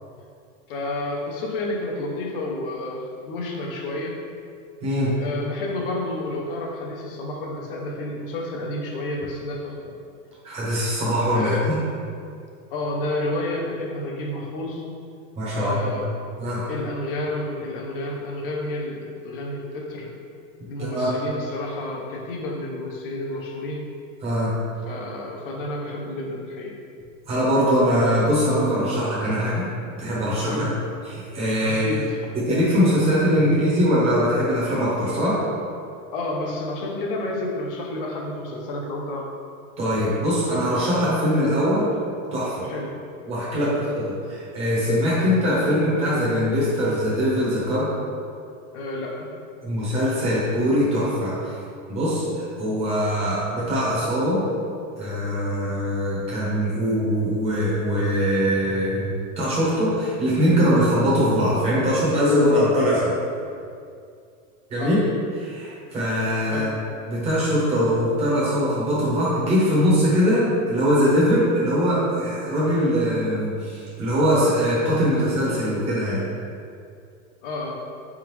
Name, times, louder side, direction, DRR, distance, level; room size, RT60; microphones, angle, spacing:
voice 1, 0.7-4.2 5.2-9.9 11.3-11.7 12.7-14.8 15.5-16.1 16.7-20.1 20.7-23.9 24.9-26.8 30.5-30.8 31.6-32.4 36.1-39.3 42.7-42.9 43.6-43.8 48.7-49.3 64.8-65.0 66.5-66.7 77.4-77.9, left 1 dB, 40° left, 0 dB, 0.7 m, -30 dB
voice 2, 4.8-5.2 10.4-11.8 15.4-16.0 16.4-16.7 20.8-21.1 24.2-24.5 27.3-29.7 30.0-30.6 31.0-31.8 32.3-35.4 39.8-41.9 42.3-42.7 43.3-43.7 44.3-47.9 49.6-51.6 51.9-54.4 55.0-63.2 64.7-65.0 65.4-66.7 67.1-76.2, equal, 15° right, -7 dB, 0.8 m, -22 dB
4.8 x 3.6 x 3.1 m, 2.3 s
supercardioid pair, 175°, 41 cm